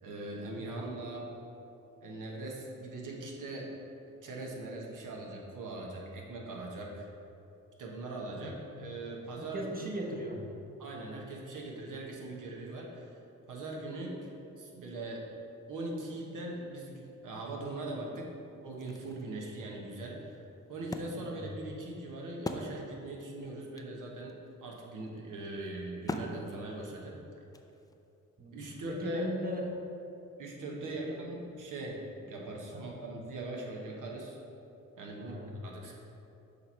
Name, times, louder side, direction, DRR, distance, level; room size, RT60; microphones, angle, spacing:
voice 1, 0.0-1.3 2.0-3.7 4.2-7.1 7.8-9.7 10.8-13.2 13.5-14.3 14.6-15.3 15.7-18.3 18.6-20.3 20.7-24.3 24.6-27.2 28.5-29.3 30.4-34.4 35.0-35.4 35.6-35.9, right 2 dB, 70° right, -1 dB, 1.1 m, -41 dB
voice 2, 0.5-0.9 8.4-8.6 9.4-10.4 21.1-21.4 28.4-28.6 28.9-29.7 30.8-31.2 32.7-32.9 35.2-35.6, right 1 dB, 25° right, 0 dB, 1.0 m, -39 dB
Wood, 18.5-23.2 23.5-23.6 23.8-28.1, left 2 dB, 10° left, 0.4 m, -43 dB
6.5 x 3.1 x 5.5 m, 2.8 s
cardioid pair, 75°, 32 cm